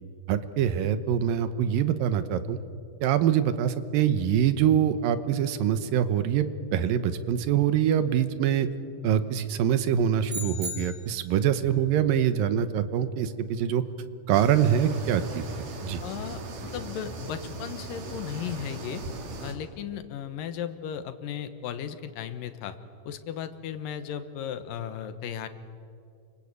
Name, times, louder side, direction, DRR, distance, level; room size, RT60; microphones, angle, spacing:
voice 1, 0.3-2.6 3.0-8.7 9.0-13.8 14.3-15.4 15.8-16.0, right 9 dB, 85° right, 12 dB, 2.8 m, -24 dB
sound 1, 10.3-11.4, left 1 dB, 15° right, 3.0 m, -36 dB
sound 2, 14.3-19.5, right 2 dB, 65° right, 4.1 m, -38 dB
voice 2, 16.0-19.0 19.4-22.8 23.1-25.5, left 9 dB, 75° left, 11 dB, 2.8 m, -36 dB
28.0 x 25.0 x 8.3 m, 2.4 s
omnidirectional pair, 4.0 m